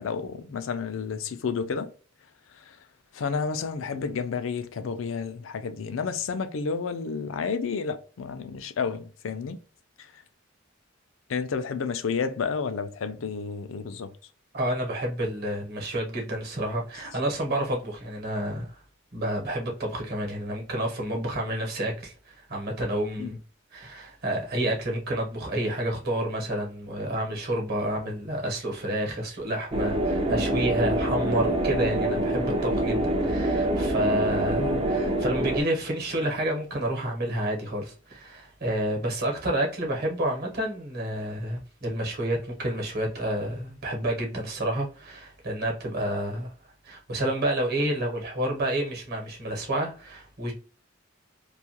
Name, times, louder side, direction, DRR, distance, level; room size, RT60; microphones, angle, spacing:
voice 1, 0.0-1.9 2.5-2.8 3.1-9.6 10.0-10.2 11.3-14.1 23.2-23.3, left 5 dB, 70° left, 0.4 m, -31 dB
voice 2, 14.5-18.8 19.1-23.4 23.7-46.5 46.8-50.5, right 1 dB, 50° right, 1.0 m, -29 dB
sound 1, 29.7-35.6, right 1 dB, 30° right, 0.4 m, -26 dB
2.7 x 2.4 x 2.8 m
head